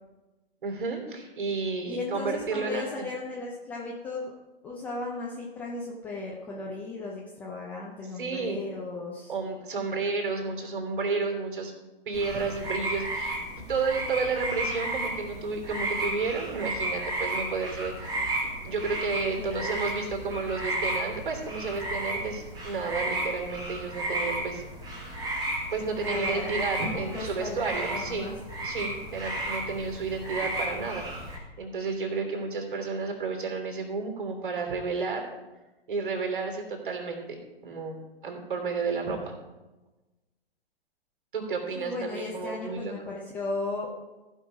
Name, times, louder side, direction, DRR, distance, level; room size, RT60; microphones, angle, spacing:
voice 1, 0.6-3.1 8.1-8.6 9.3-11.7 12.1-18.1 18.6-24.6 25.7-28.3 28.6-35.3 35.9-39.4 41.3-43.1, right 4 dB, 55° right, 3 dB, 2.9 m, -32 dB
voice 2, 1.8-4.3 4.6-9.3 19.4-19.7 26.0-26.5 26.9-27.6 27.9-28.4 41.7-43.9, left 3 dB, 5° left, -4 dB, 0.4 m, -36 dB
sound 1, 12.1-31.4, right 1 dB, 15° right, 2.0 m, -33 dB
15.0 x 5.6 x 4.8 m, 1.1 s
figure-of-eight pair, 130°, 31 cm